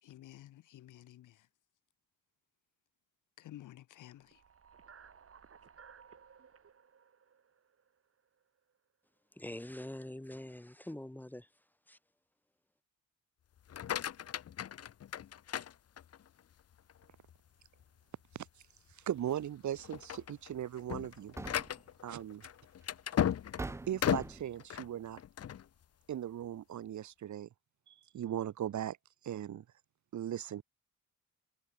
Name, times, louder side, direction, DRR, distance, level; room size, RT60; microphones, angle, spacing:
voice 1, 0.0-1.5 3.4-4.4, left 13 dB, 75° left, 1.6 m, -53 dB
sound 1, 4.1-8.4, right 6 dB, 50° right, 3.9 m, -59 dB
voice 2, 9.3-11.5 11.9-12.0, left 1 dB, 5° left, 1.5 m, -44 dB
sound 2, 13.6-16.4 16.9-17.3 17.8-17.9 18.3-18.5 19.2-19.4 19.8-25.6, left 10 dB, 50° left, 0.9 m, -36 dB
voice 3, 19.1-21.3 22.0-22.5 23.9-25.2 26.1-27.5 27.9-29.0 29.2-29.6 30.1-30.6, right 10 dB, 65° right, 2.0 m, -38 dB
sound 3, 20.0-20.1 21.1-21.9 22.9-23.0 23.6-24.6, right 3 dB, 10° right, 0.4 m, -43 dB
cardioid pair, 70°, 31 cm